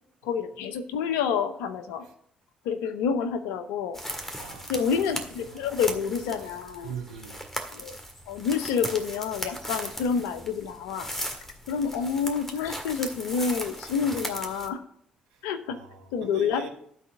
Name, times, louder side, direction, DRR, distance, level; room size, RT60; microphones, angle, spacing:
voice 1, 0.2-2.1 2.6-4.0 4.7-6.9 7.7-8.0 8.3-11.1 11.7-14.8 15.4-15.8 16.1-16.7, left 6 dB, 80° left, 11 dB, 0.7 m, -28 dB
sound 1, 3.9-14.7, equal, 10° left, 1.8 m, -38 dB
voice 2, 4.3-4.9 5.4-5.7 6.8-7.4 15.7-16.7, right 6 dB, 90° right, 3 dB, 1.1 m, -41 dB
12.0 x 4.1 x 6.0 m, 0.67 s
hypercardioid pair, 50°, 3 cm